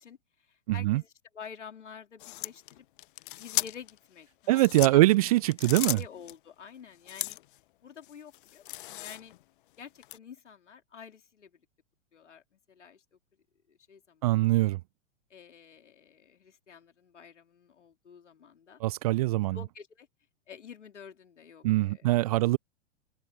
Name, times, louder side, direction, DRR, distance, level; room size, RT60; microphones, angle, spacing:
voice 1, 0.0-2.8 3.4-5.0 5.9-7.4 7.8-9.3 9.8-11.5 12.1-12.4 12.7-13.0 13.7-14.5 15.3-18.8 19.5-20.1 20.5-22.4, left 7 dB, 75° left, 2.7 m, -49 dB
voice 2, 0.7-1.0 4.5-6.0 14.2-14.8 18.8-19.6 21.6-22.6, right 18 dB, 35° right, 0.4 m, -23 dB
sound 1, 2.2-4.0 4.5-6.3 7.1-7.6 8.0-9.4 10.0-10.2, left 16 dB, 45° left, 0.5 m, -36 dB
figure-of-eight pair, 105°, 36 cm